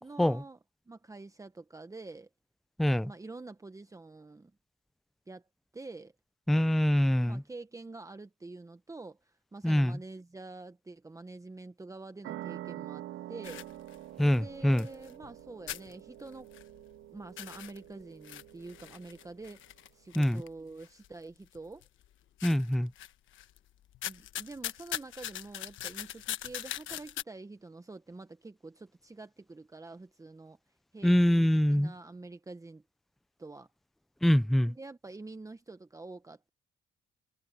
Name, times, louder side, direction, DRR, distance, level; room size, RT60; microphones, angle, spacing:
voice 1, 0.0-0.6 0.9-2.3 3.0-4.5 5.3-5.4 5.7-6.1 7.2-13.7 14.2-16.5 17.1-21.9 24.1-30.6 30.9-32.8 33.4-33.7 34.7-36.5, right 3 dB, 15° right, 1.0 m, -47 dB
voice 2, 2.8-3.1 6.5-7.4 9.6-10.0 14.2-14.9 20.2-20.4 22.4-22.9 31.0-31.9 34.2-34.7, equal, ahead, 0.5 m, -25 dB
sound 1, 12.2-19.4, right 14 dB, 75° right, 0.7 m, -46 dB
sound 2, 13.4-15.4 15.7-17.0 17.2-21.1 21.5-22.1 22.4-23.6 23.9-27.2, left 12 dB, 80° left, 1.2 m, -41 dB
cardioid pair, 90°, 20 cm